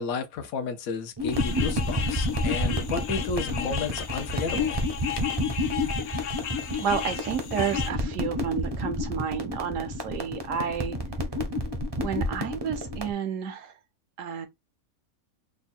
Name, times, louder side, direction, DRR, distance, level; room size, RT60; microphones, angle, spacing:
voice 1, 0.0-4.8, left 5 dB, 80° left, 1.1 m, -32 dB
sound 1, 1.2-13.1, left 1 dB, 30° right, 0.5 m, -30 dB
sound 2, 1.3-7.9, left 8 dB, 60° left, 0.9 m, -35 dB
voice 2, 6.7-11.0 11.9-13.8 14.2-14.5, right 7 dB, 70° right, 0.9 m, -31 dB
3.5 x 2.1 x 4.1 m
omnidirectional pair, 1.5 m